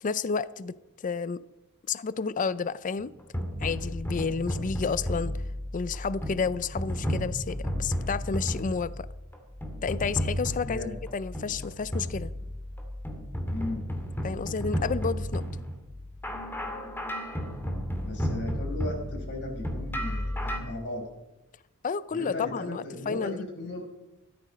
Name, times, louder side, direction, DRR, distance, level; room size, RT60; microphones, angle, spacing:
voice 1, 0.0-0.8 1.0-1.4 1.9-3.1 3.6-5.4 5.7-9.1 9.8-10.9 11.1-12.3 14.2-15.4 21.8-23.5, left 5 dB, 35° left, 17 dB, 0.4 m, -31 dB
sound 1, 3.0-20.6, equal, 10° left, 2.1 m, -33 dB
voice 2, 10.6-11.0 13.5-13.9 18.0-21.1 22.1-23.8, left 2 dB, 55° left, 1 dB, 5.3 m, -36 dB
15.0 x 13.0 x 5.1 m, 0.98 s
head